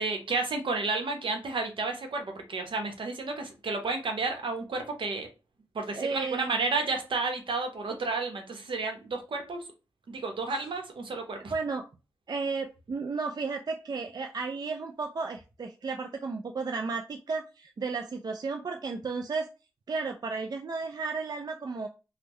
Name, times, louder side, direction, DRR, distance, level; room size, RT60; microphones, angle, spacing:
voice 1, 0.0-5.3 5.7-9.6 10.1-11.5, right 3 dB, 70° right, 0.8 m, -31 dB
voice 2, 5.9-6.6 11.1-11.2 11.5-11.9 12.3-19.5 19.9-21.9, right 4 dB, 45° right, 0.4 m, -33 dB
3.5 x 2.1 x 3.0 m
cardioid pair, 40°, 9 cm